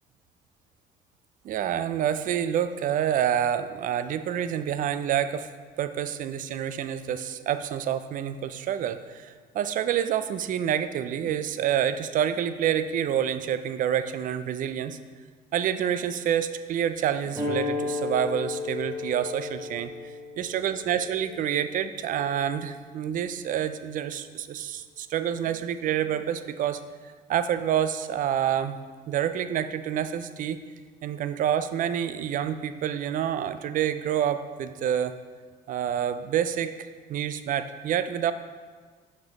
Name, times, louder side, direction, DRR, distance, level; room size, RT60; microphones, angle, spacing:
voice 1, 1.4-5.5 5.8-15.0 15.5-26.8 27.3-28.8 29.1-30.6 31.0-35.1 35.7-38.3, right 9 dB, 55° right, 11 dB, 0.4 m, -28 dB
sound 1, 17.4-22.5, left 4 dB, 15° right, 2.1 m, -34 dB
5.9 x 5.4 x 3.9 m, 1.5 s
cardioid pair, 110°, 17 cm